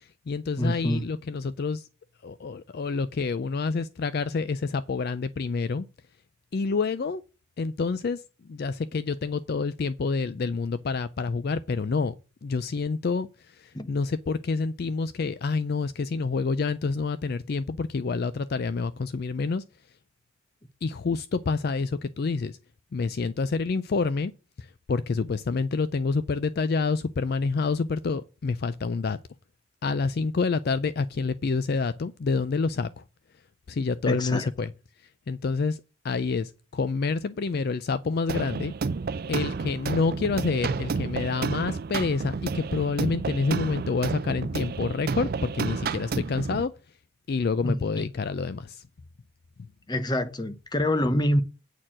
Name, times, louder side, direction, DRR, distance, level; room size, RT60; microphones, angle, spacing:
voice 1, 0.0-1.9 2.2-5.9 6.5-7.2 7.6-8.2 8.5-12.1 12.4-19.6 20.8-22.6 22.9-24.3 24.6-29.2 29.8-33.0 33.7-34.7 35.3-38.7 39.3-46.7 47.3-48.8, left 4 dB, 45° left, 0.4 m, -28 dB
voice 2, 0.6-1.0 13.7-13.9 34.1-34.5 47.6-48.0 49.9-51.4, left 1 dB, 20° left, 0.8 m, -26 dB
sound 1, 38.3-46.7, right 4 dB, 45° right, 0.4 m, -31 dB
9.2 x 4.4 x 7.3 m
head